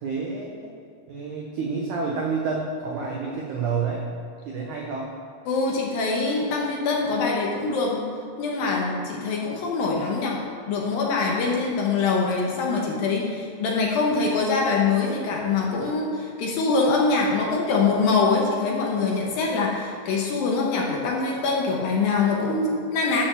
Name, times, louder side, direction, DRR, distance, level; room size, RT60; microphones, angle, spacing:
voice 1, 0.0-0.7 1.1-4.0 4.5-5.1, right 4 dB, 80° right, -2 dB, 1.8 m, -29 dB
voice 2, 5.5-8.0 8.4-10.4 10.7-23.2, left 4 dB, 65° left, -2 dB, 2.5 m, -24 dB
11.5 x 6.1 x 7.0 m, 2.2 s
omnidirectional pair, 5.1 m